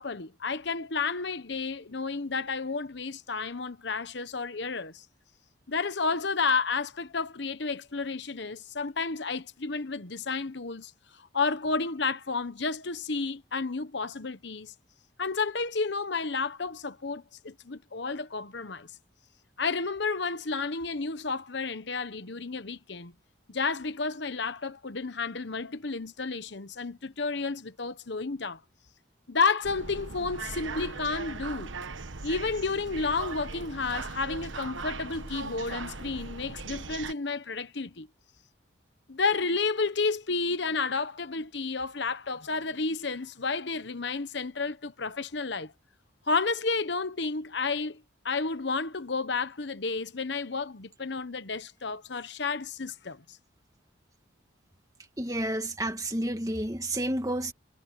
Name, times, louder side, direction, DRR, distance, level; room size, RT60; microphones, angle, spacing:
voice 1, 0.0-5.0 5.7-10.9 11.2-14.7 15.2-18.9 19.6-23.1 23.5-28.6 29.3-31.7 32.2-38.1 39.1-45.7 46.3-53.4, left 4 dB, 65° left, 1.1 m, -31 dB
sound 1, 29.6-37.1, right 4 dB, 80° right, 1.3 m, -39 dB
voice 2, 55.2-57.5, right 1 dB, 20° right, 2.1 m, -30 dB
head